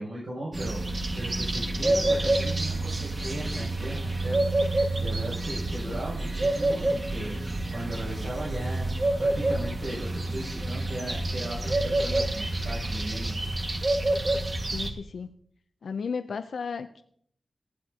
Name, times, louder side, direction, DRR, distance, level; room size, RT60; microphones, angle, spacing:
voice 1, 0.0-8.9 9.2-13.3, right 1 dB, 80° right, -6 dB, 7.3 m, -37 dB
sound 1, 0.5-14.9, right 2 dB, 35° right, 1.8 m, -28 dB
voice 2, 14.7-15.3 15.8-17.0, left 5 dB, 85° left, 8 dB, 0.6 m, -34 dB
19.0 x 14.5 x 2.9 m, 0.65 s
wide cardioid pair, 95°, 0 cm